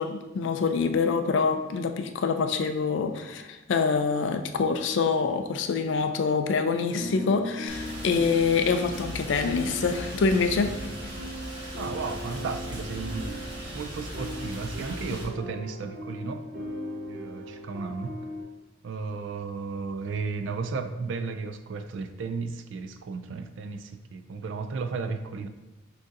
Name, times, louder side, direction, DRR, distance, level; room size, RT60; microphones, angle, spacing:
voice 1, 0.0-10.7, left 5 dB, 70° left, 7 dB, 0.4 m, -25 dB
sound 1, 7.0-18.4, equal, 45° right, 0.8 m, -39 dB
Rain, 7.7-15.2, equal, 25° right, 1.1 m, -38 dB
voice 2, 11.8-13.5 13.7-16.5 17.1-18.2 18.8-25.5, right 4 dB, 70° right, 9 dB, 0.3 m, -34 dB
6.3 x 2.6 x 2.5 m, 1.1 s
head